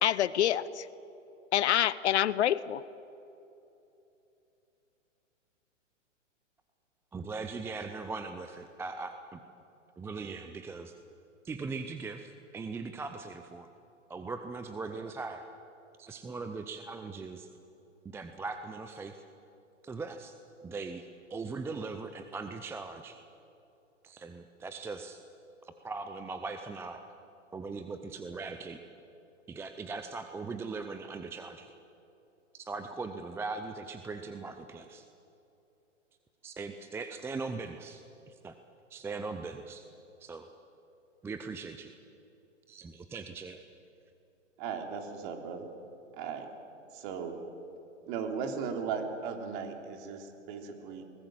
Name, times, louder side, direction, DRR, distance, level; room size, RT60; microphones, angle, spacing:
voice 1, 0.0-0.9 1.5-2.8, left 11 dB, 60° left, 18 dB, 0.8 m, -26 dB
voice 2, 7.1-9.4 10.0-10.9 11.4-13.7 14.1-15.5 16.0-17.5 18.0-19.2 19.8-20.3 20.6-23.2 24.0-25.2 25.6-27.0 27.5-28.8 29.5-31.7 32.5-35.0 36.4-38.5 38.9-39.8 40.2-40.5 41.2-41.9 42.7-43.6, right 4 dB, 5° right, 8 dB, 0.5 m, -40 dB
voice 3, 44.6-45.7 46.1-46.5 46.9-47.4 48.1-51.0, right 6 dB, 40° right, 4 dB, 3.3 m, -37 dB
22.5 x 19.5 x 7.7 m, 2.8 s
hypercardioid pair, 120°, 38 cm